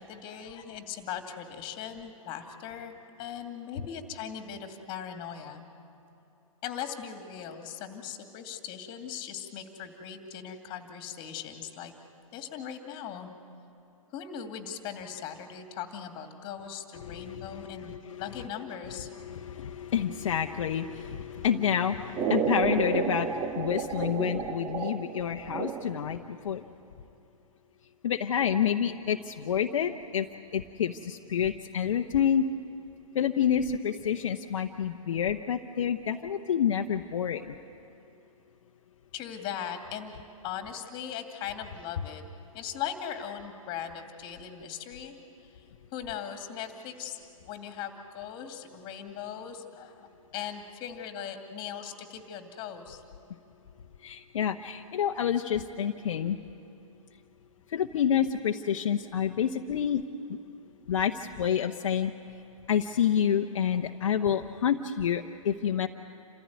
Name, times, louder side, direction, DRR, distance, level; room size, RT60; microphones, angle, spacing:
voice 1, 0.0-2.9 3.2-5.6 6.6-11.9 12.3-13.3 14.1-19.1 39.1-40.1 40.4-42.2 42.5-45.2 45.4-45.6 45.9-47.2 47.4-50.0 50.3-53.0, left 8 dB, 30° left, 6 dB, 2.5 m, -39 dB
voice 2, 17.0-18.2 18.9-26.6 28.0-30.3 30.5-32.4 33.1-37.5 54.0-56.4 57.7-60.0 60.9-62.1 62.7-65.9, left 8 dB, 60° left, 5 dB, 0.9 m, -28 dB
sound 1, 22.1-26.2, right 7 dB, 20° right, 0.9 m, -31 dB
28.5 x 15.0 x 9.5 m, 2.9 s
hypercardioid pair, 125°, 18 cm